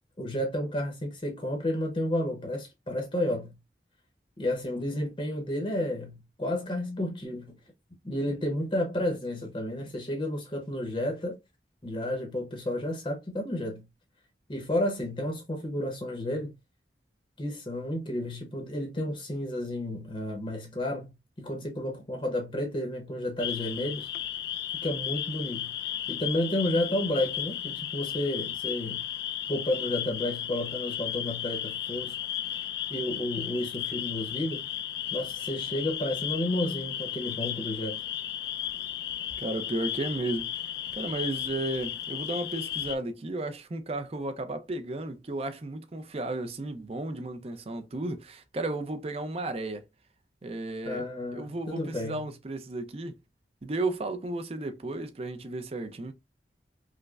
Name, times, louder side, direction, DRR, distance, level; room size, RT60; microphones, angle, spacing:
voice 1, 0.2-3.5 4.4-7.5 8.0-11.3 11.8-13.8 14.5-16.5 17.4-21.1 21.4-24.1 24.8-25.8 26.1-29.0 29.5-32.2 32.9-34.6 35.1-38.0 50.8-52.2, left 1 dB, 30° left, 0.7 m, -31 dB
sound 1, 23.4-42.9, left 11 dB, 60° left, 0.3 m, -34 dB
voice 2, 39.4-49.8 50.4-51.1 51.3-53.1 53.6-56.1, right 2 dB, 35° right, 0.5 m, -34 dB
4.8 x 2.1 x 2.3 m
head